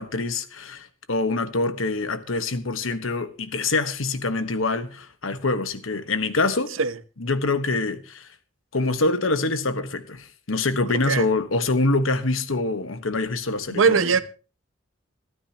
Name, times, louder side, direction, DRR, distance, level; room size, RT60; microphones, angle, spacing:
voice 1, 0.0-6.7 7.2-8.3 8.7-14.2, left 3 dB, 85° left, 1.3 m, -25 dB
voice 2, 10.9-11.2 13.7-14.2, right 5 dB, 85° right, 0.9 m, -20 dB
26.5 x 9.4 x 2.9 m
head